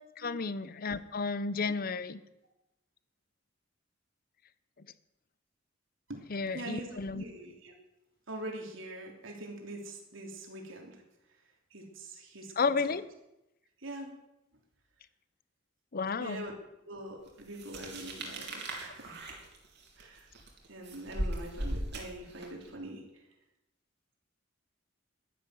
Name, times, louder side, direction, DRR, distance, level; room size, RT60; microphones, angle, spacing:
voice 1, 0.2-2.2 6.3-7.2 12.6-13.0 15.9-16.4, left 4 dB, 50° left, 15 dB, 0.7 m, -32 dB
voice 2, 6.5-7.7 8.3-11.0 11.7-12.9 13.8-14.2 16.2-16.5 16.8-19.2 20.0-20.3 20.7-23.0, right 1 dB, 85° right, 1 dB, 3.1 m, -43 dB
sound 1, 17.5-22.7, right 1 dB, 60° right, 3.1 m, -38 dB
12.0 x 10.5 x 7.8 m, 0.92 s
head